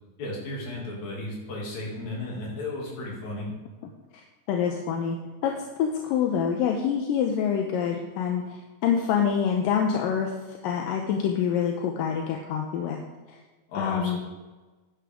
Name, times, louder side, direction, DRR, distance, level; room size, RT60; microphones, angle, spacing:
voice 1, 0.2-3.5 13.7-14.2, left 2 dB, 55° left, -3 dB, 3.7 m, -34 dB
voice 2, 4.5-5.2 5.4-13.0 13.3-13.4 13.7-14.2, left 7 dB, 80° left, 2 dB, 2.4 m, -26 dB
12.0 x 9.6 x 3.6 m, 1.2 s
omnidirectional pair, 4.1 m